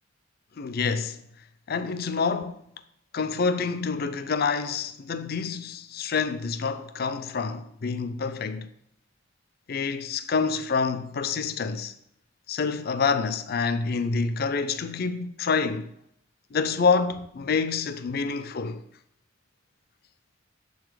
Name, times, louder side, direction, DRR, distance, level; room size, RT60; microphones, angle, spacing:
voice 1, 0.6-1.2 1.7-2.6 3.1-8.7 9.7-11.9 12.5-15.9 16.5-18.8, left 5 dB, 50° left, 0.4 m, -27 dB
7.0 x 4.0 x 4.7 m
head